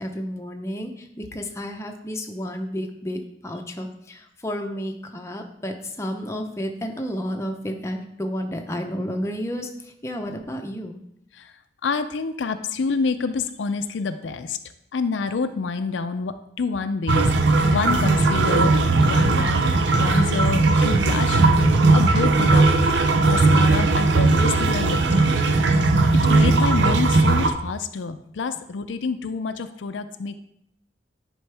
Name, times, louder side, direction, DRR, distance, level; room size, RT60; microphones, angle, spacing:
voice 1, 0.0-11.0, equal, 15° left, 3 dB, 0.6 m, -31 dB
voice 2, 11.8-14.6 14.9-17.3 17.7-18.8 19.0-19.6 19.9-21.4 21.9-22.7 23.3-25.8 26.2-30.4, left 4 dB, 90° left, 10 dB, 0.5 m, -27 dB
sound 1, 17.1-27.5, right 3 dB, 75° right, 0.6 m, -18 dB
9.9 x 4.5 x 3.4 m, 0.74 s
head